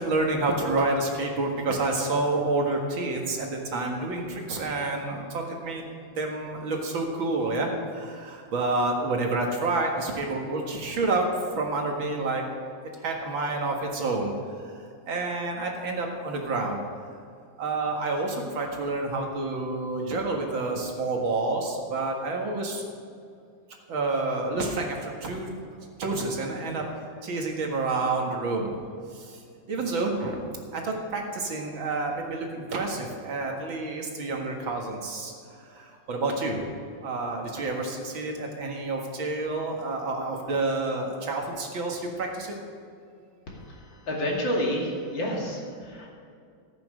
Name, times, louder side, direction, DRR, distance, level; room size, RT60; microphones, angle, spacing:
voice 1, 0.0-5.8 6.2-11.3 11.5-12.4 13.0-14.3 14.6-16.8 17.6-22.8 23.9-25.5 26.0-26.8 27.2-29.4 29.7-36.6 37.0-42.5, right 2 dB, 75° right, 1 dB, 2.5 m, -29 dB
voice 2, 43.5-46.1, equal, 65° left, -2 dB, 3.1 m, -30 dB
14.5 x 8.8 x 6.4 m, 2.4 s
omnidirectional pair, 2.2 m